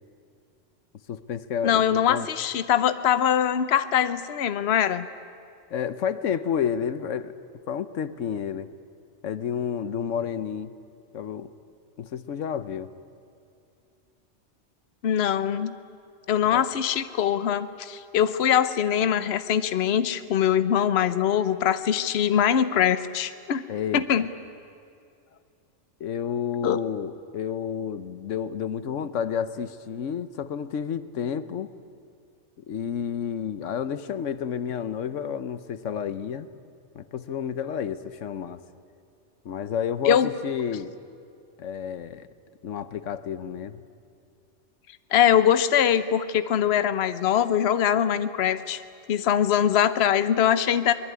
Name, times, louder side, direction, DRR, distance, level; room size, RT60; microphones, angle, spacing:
voice 1, 1.1-2.3 5.7-7.3 7.7-8.7 9.2-10.7 11.1-11.5 12.0-12.9 16.5-16.7 23.7-24.2 26.0-31.7 32.6-36.5 36.9-38.6 39.4-41.0 41.6-42.3 42.6-43.8, left 8 dB, 85° left, 14 dB, 1.2 m, -30 dB
voice 2, 1.6-5.1 15.0-15.7 16.3-23.6 23.9-24.3 26.6-26.8 40.0-40.3 45.1-48.8 49.1-50.9, left 9 dB, 60° left, 13 dB, 1.0 m, -22 dB
23.5 x 20.5 x 9.5 m, 2.6 s
omnidirectional pair, 1.3 m